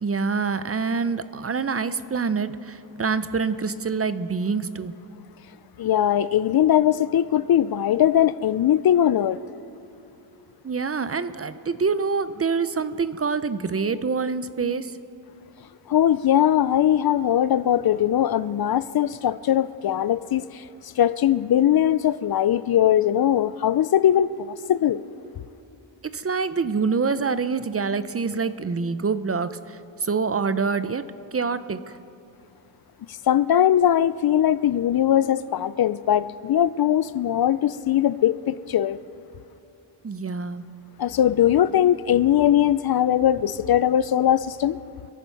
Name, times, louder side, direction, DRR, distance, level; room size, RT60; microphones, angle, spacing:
voice 1, 0.0-4.9 10.6-14.9 26.1-31.0 31.3-32.0 40.0-40.7, right 5 dB, 30° right, 13 dB, 0.6 m, -26 dB
voice 2, 5.8-9.4 15.9-20.6 21.0-25.0 33.1-39.0 41.0-44.8, left 11 dB, 55° left, 16 dB, 0.5 m, -20 dB
27.5 x 11.0 x 4.6 m, 2.7 s
wide cardioid pair, 90°, 44 cm